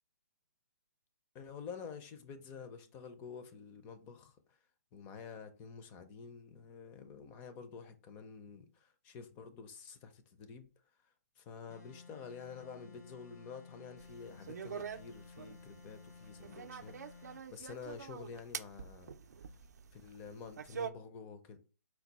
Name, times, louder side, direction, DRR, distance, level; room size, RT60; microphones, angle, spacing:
voice 1, 1.3-4.4 4.9-10.7 11.4-19.2 19.9-21.6, left 6 dB, 15° left, 0.4 m, -49 dB
sound 1, 11.7-17.5, left 4 dB, 85° left, 1.4 m, -55 dB
sound 2, 14.0-20.9, right 6 dB, 75° right, 0.4 m, -46 dB
4.5 x 2.3 x 4.0 m
hypercardioid pair, 160°, 9 cm